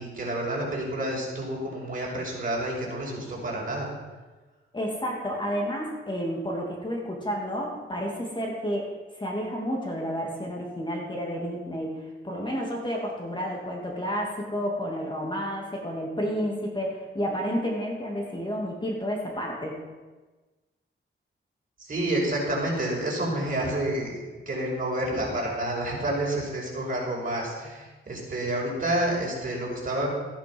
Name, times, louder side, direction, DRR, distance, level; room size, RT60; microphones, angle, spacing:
voice 1, 0.0-3.9 21.8-30.1, right 1 dB, 40° right, -2 dB, 5.3 m, -29 dB
voice 2, 4.7-19.8, equal, 20° left, -2 dB, 2.8 m, -31 dB
14.5 x 10.5 x 5.5 m, 1.3 s
wide cardioid pair, 95°, 21 cm